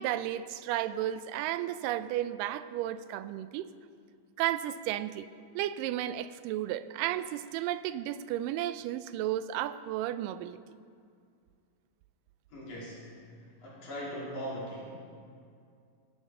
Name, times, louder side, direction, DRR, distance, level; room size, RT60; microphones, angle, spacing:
voice 1, 0.0-3.7 4.4-5.3 5.6-10.6, right 12 dB, 85° right, 2.2 m, -33 dB
voice 2, 12.5-13.0 13.6-15.0, equal, 65° left, 4.4 m, -39 dB
15.5 x 14.5 x 3.7 m
omnidirectional pair, 3.8 m